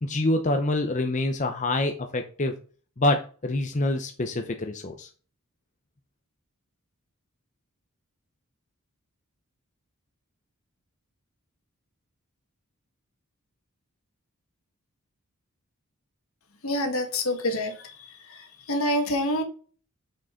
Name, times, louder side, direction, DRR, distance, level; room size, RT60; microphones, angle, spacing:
voice 1, 0.0-2.5 3.0-5.1, left 2 dB, 35° left, 0.7 m, -26 dB
voice 2, 16.6-19.4, left 1 dB, 70° left, 1.7 m, -27 dB
6.7 x 6.3 x 3.8 m
head